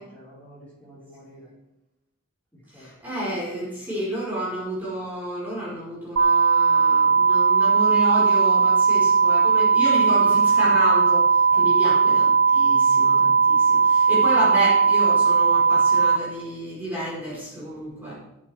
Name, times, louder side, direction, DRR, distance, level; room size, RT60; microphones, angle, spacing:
voice 1, 0.0-1.5 2.7-2.9 11.5-11.9, equal, 5° left, -10 dB, 5.2 m, -48 dB
voice 2, 2.7-18.1, right 1 dB, 10° right, -9 dB, 5.3 m, -30 dB
sound 1, 6.2-16.2, right 5 dB, 75° right, 1.2 m, -18 dB
18.0 x 7.8 x 3.7 m, 0.91 s
head